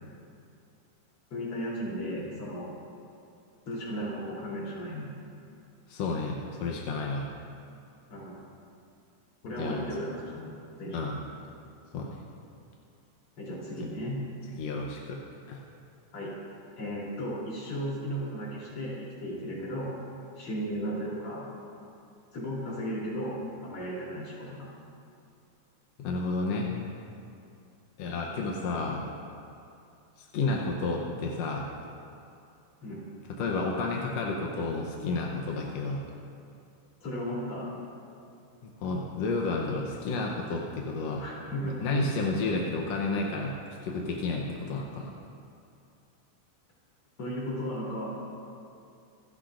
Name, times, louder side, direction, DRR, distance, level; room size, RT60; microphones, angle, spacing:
voice 1, 1.3-2.7 3.7-5.1 8.1-8.4 9.4-11.2 13.4-14.2 16.1-16.3 16.8-20.0 20.4-21.5 22.3-24.7 28.0-28.2 32.8-33.0 37.0-37.7 41.2-42.2 47.2-48.1, equal, 40° left, -6 dB, 4.2 m, -35 dB
voice 2, 5.9-7.3 9.6-9.8 10.9-11.2 11.9-12.2 14.6-15.2 15.5-15.6 26.0-26.7 28.0-29.0 30.2-31.7 33.4-36.0 38.8-41.2 41.8-43.6 43.8-45.1, left 3 dB, 70° left, -1 dB, 1.7 m, -31 dB
26.5 x 12.0 x 2.6 m, 2.6 s
omnidirectional pair, 3.9 m